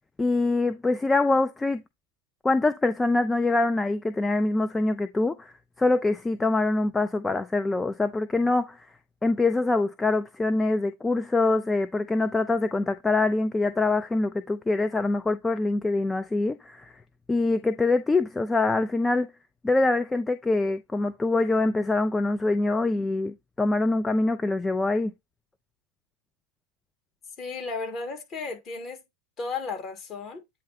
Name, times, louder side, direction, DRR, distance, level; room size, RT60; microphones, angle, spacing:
voice 1, 0.2-1.8 2.4-5.5 5.8-8.8 9.2-16.9 17.3-19.3 19.6-25.1, left 2 dB, 10° left, 0.5 m, -24 dB
voice 2, 27.4-29.0 29.4-30.4, left 4 dB, 30° left, 2.2 m, -34 dB
8.6 x 3.2 x 4.0 m
figure-of-eight pair, 90°, 0 cm